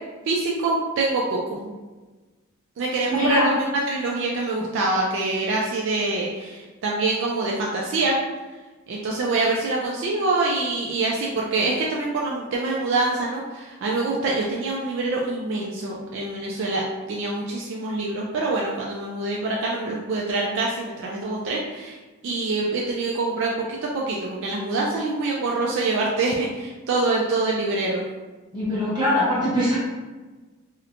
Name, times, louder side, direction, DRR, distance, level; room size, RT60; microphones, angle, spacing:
voice 1, 0.3-1.7 2.8-8.2 8.9-22.0 22.2-28.0, right 2 dB, 60° right, -3 dB, 0.3 m, -25 dB
voice 2, 3.1-3.5 28.5-29.8, equal, 20° right, -10 dB, 1.2 m, -22 dB
2.8 x 2.1 x 2.4 m, 1.3 s
head